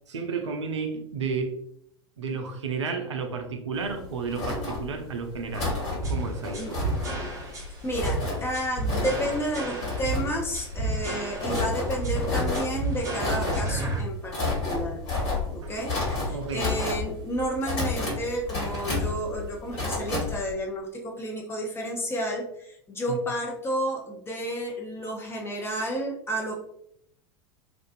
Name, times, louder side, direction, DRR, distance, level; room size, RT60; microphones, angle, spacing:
voice 1, 0.1-1.6 2.2-5.7 6.1-7.0 15.6-15.8 16.3-16.7 23.1-23.2, right 5 dB, 70° right, 4 dB, 0.4 m, -32 dB
sound 1, 3.8-20.5, left 3 dB, 45° left, 1.4 m, -31 dB
sound 2, 6.0-14.0, right 2 dB, 20° right, 0.7 m, -32 dB
voice 2, 7.8-14.4 14.7-15.0 15.5-26.6, right 1 dB, 15° left, 0 dB, 0.6 m, -31 dB
2.4 x 2.3 x 2.4 m, 0.70 s
figure-of-eight pair, 85°, 15 cm